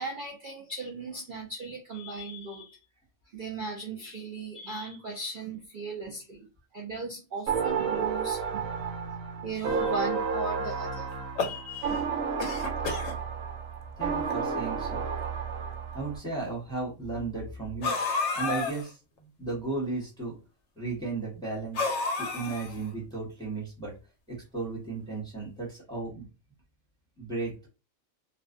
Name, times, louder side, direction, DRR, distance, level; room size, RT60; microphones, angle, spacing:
voice 1, 0.0-2.8 3.3-6.5 6.7-9.2 9.4-11.1 11.4-12.1, right 3 dB, 60° right, 0 dB, 0.5 m, -37 dB
sound 1, 7.5-16.2, right 6 dB, 80° right, 1.0 m, -31 dB
sound 2, 11.1-12.0 12.4-13.2 14.0-14.1 14.3-14.4 15.3-15.4 17.8-18.9 21.7-22.9, left 4 dB, 75° left, 0.9 m, -30 dB
voice 2, 14.0-15.0 15.9-18.0 18.3-20.3 20.8-21.9 22.2-23.9 24.3-26.3 27.2-27.7, right 3 dB, 5° left, -4 dB, 0.8 m, -35 dB
2.5 x 2.2 x 2.4 m, 0.32 s
omnidirectional pair, 1.4 m